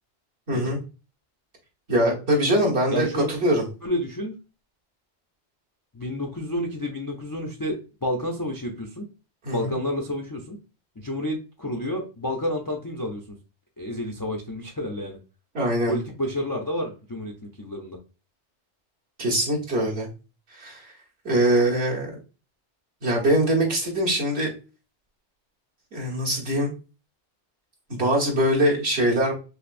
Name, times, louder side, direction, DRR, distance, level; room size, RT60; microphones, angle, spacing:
voice 1, 0.5-0.8 1.9-3.6 9.4-9.7 15.5-15.9 19.2-20.1 20.5-20.9 21.2-22.1 23.0-24.5 25.9-26.7 27.9-29.3, right 1 dB, 65° right, -3 dB, 1.5 m, -23 dB
voice 2, 2.9-3.3 3.8-4.3 5.9-9.1 9.5-10.6 11.0-13.4 13.8-15.2 15.9-18.0, left 1 dB, 35° left, 0 dB, 0.3 m, -30 dB
5.6 x 2.0 x 2.5 m, 0.33 s
omnidirectional pair, 1.2 m